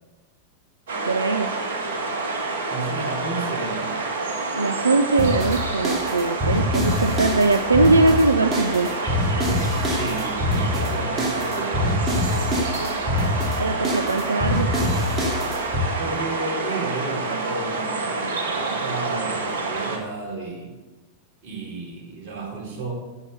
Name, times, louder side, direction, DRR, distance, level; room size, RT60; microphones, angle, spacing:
sound 1, 0.9-20.0, right 3 dB, 60° right, 1.8 m, -28 dB
voice 1, 1.1-1.6 4.6-8.9 13.6-14.7, right 3 dB, 75° right, 7 dB, 0.5 m, -21 dB
voice 2, 2.7-4.0 9.8-12.3 16.0-20.7 21.4-22.9, right 3 dB, 40° right, -2 dB, 4.2 m, -32 dB
sound 2, 5.2-15.9, left 1 dB, 20° right, 2.7 m, -25 dB
9.7 x 7.7 x 6.7 m, 1.2 s
figure-of-eight pair, 90°, 0 cm